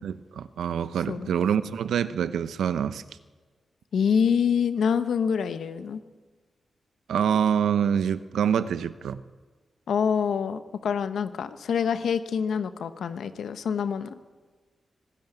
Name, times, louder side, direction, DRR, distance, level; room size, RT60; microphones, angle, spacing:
voice 1, 0.0-3.0 7.1-9.2, right 8 dB, 85° right, 14 dB, 0.8 m, -26 dB
voice 2, 3.9-6.0 9.9-14.2, left 7 dB, 80° left, 11 dB, 1.1 m, -26 dB
24.0 x 13.0 x 9.3 m, 1.4 s
supercardioid pair, 45°, 0 cm